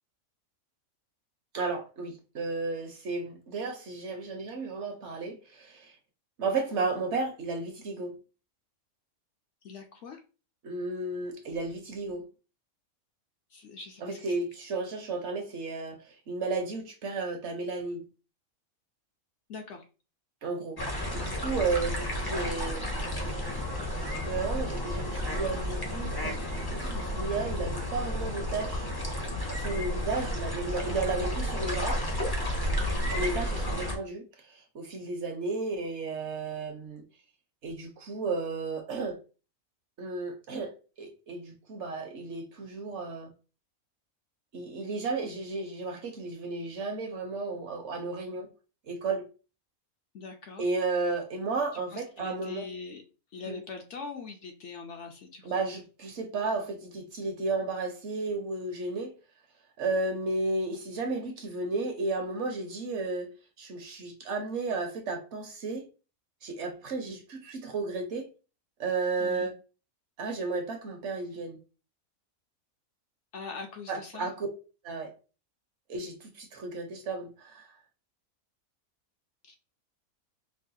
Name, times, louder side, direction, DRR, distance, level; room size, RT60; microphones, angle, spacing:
voice 1, 1.5-5.9 6.4-8.1 10.6-12.2 14.0-18.0 20.4-23.7 24.3-28.9 29.5-32.0 33.1-37.0 37.6-39.2 40.0-40.7 41.0-43.3 44.5-48.5 48.9-49.2 50.6-52.7 53.4-53.6 55.4-59.1 59.8-63.3 63.6-65.9 66.4-68.3 68.8-69.5 70.2-71.6 73.9-74.5 74.8-75.1 75.9-77.7, right 3 dB, 60° right, 0.9 m, -33 dB
voice 2, 9.6-10.2 13.5-14.5 19.5-19.8 32.8-33.1 50.1-50.7 51.7-53.0 53.3-55.6 69.2-69.5 73.3-74.3 79.4-79.6, left 4 dB, 65° left, 0.8 m, -42 dB
sound 1, 20.8-34.0, equal, 25° left, 0.5 m, -32 dB
4.6 x 2.1 x 2.6 m
omnidirectional pair, 1.5 m